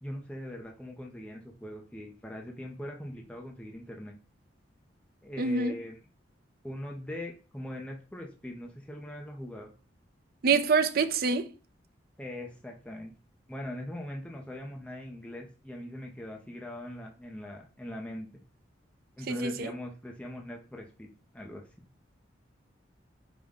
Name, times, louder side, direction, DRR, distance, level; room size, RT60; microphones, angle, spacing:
voice 1, 0.0-4.1 5.2-6.0 6.6-9.7 12.2-13.1 13.5-18.3 19.2-21.1 21.3-21.6, left 1 dB, 5° left, 0.4 m, -41 dB
voice 2, 5.4-5.7 10.4-11.5 19.3-19.7, right 4 dB, 50° right, 0.4 m, -26 dB
5.1 x 2.1 x 3.5 m
head